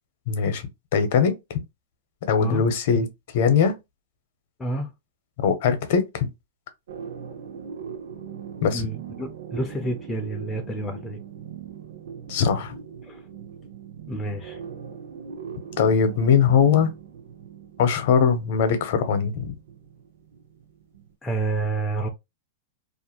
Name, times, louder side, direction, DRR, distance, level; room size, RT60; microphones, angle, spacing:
voice 1, 0.3-1.4 2.3-3.1 3.3-3.8 5.4-6.3 8.6-8.9 12.3-12.7 15.8-16.9 17.8-19.6, left 6 dB, 50° left, 0.6 m, -21 dB
voice 2, 4.6-4.9 8.7-11.2 13.1-13.2 14.1-14.6 21.2-22.1, right 2 dB, 10° left, 0.3 m, -29 dB
sound 1, 6.9-21.1, right 7 dB, 80° right, 0.6 m, -40 dB
2.4 x 2.2 x 2.8 m
supercardioid pair, 165°, 0 cm